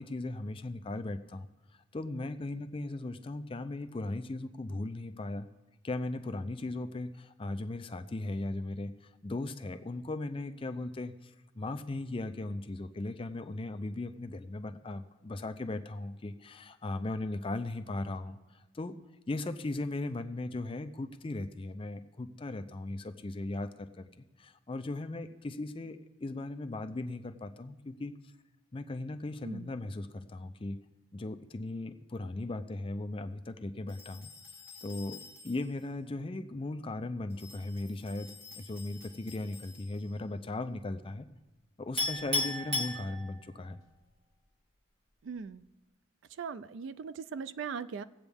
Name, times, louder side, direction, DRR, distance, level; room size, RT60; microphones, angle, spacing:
voice 1, 0.0-1.5 1.7-5.5 5.8-18.9 19.3-28.1 28.7-30.8 31.1-34.3 34.8-41.3 41.8-43.8, left 2 dB, 25° left, 9 dB, 0.4 m, -38 dB
sound 1, 33.9-35.8 37.3-40.2, left 4 dB, 10° right, 2.6 m, -52 dB
Chink clink, 42.0-43.6, left 2 dB, 30° right, 2.8 m, -32 dB
voice 2, 45.2-45.6 46.4-48.0, right 6 dB, 70° right, 15 dB, 0.4 m, -39 dB
18.5 x 8.1 x 3.5 m, 1.0 s
head